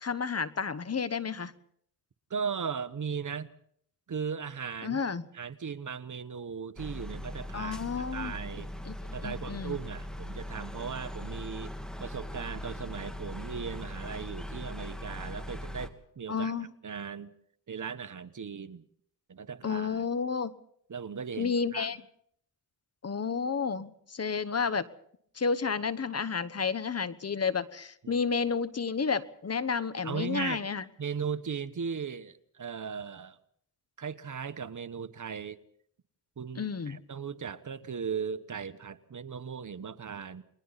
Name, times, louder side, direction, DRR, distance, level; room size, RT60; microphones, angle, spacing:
voice 1, 0.0-1.5 4.8-5.2 7.5-8.3 8.8-9.0 9.2-9.8 16.3-16.7 19.6-20.5 21.4-22.0 23.0-24.9 25.3-30.8 36.6-37.0, left 5 dB, 40° left, 15 dB, 1.1 m, -31 dB
voice 2, 2.3-3.5 4.1-5.0 5.3-7.8 8.1-8.7 9.1-11.7 12.0-16.5 16.8-17.3 17.7-18.8 19.3-20.1 20.9-21.9 28.0-28.2 30.0-30.6 31.0-33.4 34.0-35.6 36.4-40.4, right 6 dB, 50° right, 12 dB, 1.3 m, -37 dB
sound 1, 6.8-15.9, left 1 dB, ahead, 2.4 m, -40 dB
29.0 x 21.5 x 4.2 m, 0.66 s
cardioid pair, 60°, 39 cm